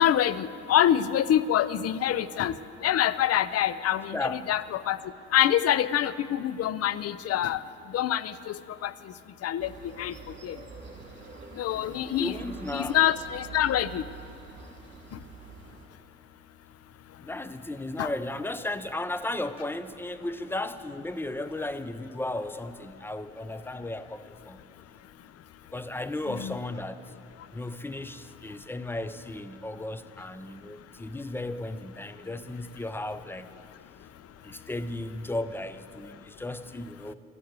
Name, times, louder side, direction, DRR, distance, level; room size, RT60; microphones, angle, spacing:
voice 1, 0.0-2.5 2.8-5.0 5.3-7.6 7.9-8.9 9.4-9.7 10.0-10.1 10.4-10.6 11.6-12.3 12.7-14.0 18.0-18.1 26.3-26.6, left 11 dB, 55° left, 16 dB, 0.5 m, -25 dB
sound 1, 9.6-15.9, right 5 dB, 40° right, 2.5 m, -46 dB
voice 2, 11.7-13.0 17.2-24.6 25.7-27.0 27.5-33.6 34.4-37.1, left 2 dB, 5° left, 13 dB, 0.5 m, -35 dB
12.5 x 8.5 x 8.1 m, 2.7 s
supercardioid pair, 75°, 30 cm